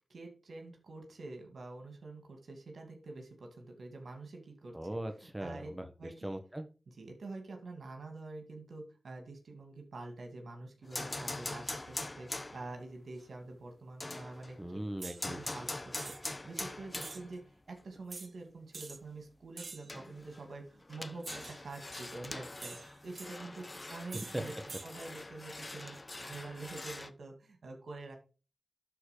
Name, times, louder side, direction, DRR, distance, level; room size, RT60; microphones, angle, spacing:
voice 1, 0.1-4.7 5.4-5.7 6.0-6.3 7.0-14.6 15.2-16.1 16.4-22.8 23.0-24.5 24.8-28.2, right 3 dB, 85° right, 3 dB, 2.3 m, -46 dB
voice 2, 4.7-5.9 6.2-6.7 14.6-15.5 24.1-24.4, right 1 dB, 15° right, 7 dB, 1.4 m, -39 dB
sound 1, 10.9-12.8 14.0-14.7 15.2-17.5 17.8-17.9 19.2-19.3 19.9-27.1, left 2 dB, 35° left, 0.7 m, -43 dB
sound 2, 15.0-15.2 16.0-16.4 17.0-17.2 18.1-18.3 18.7-19.0 19.6-19.9 21.2-21.6 22.6-23.3 24.1-24.4 24.7-24.9, right 4 dB, 65° right, 0.4 m, -46 dB
12.0 x 4.2 x 5.1 m, 0.34 s
cardioid pair, 50°, 0 cm